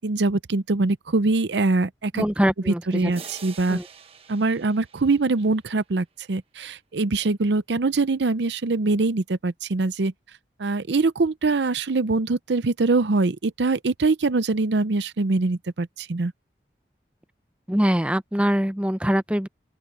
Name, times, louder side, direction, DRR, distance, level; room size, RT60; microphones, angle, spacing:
voice 1, 0.0-2.2 2.7-3.8 4.3-10.1 10.6-16.3, right 3 dB, 80° right, 0.7 m, -23 dB
voice 2, 2.2-3.1 3.7-3.8 17.7-19.5, equal, 5° right, 0.6 m, -23 dB
sound 1, 3.1-5.8, right 6 dB, 35° right, 1.2 m, -45 dB
open air
head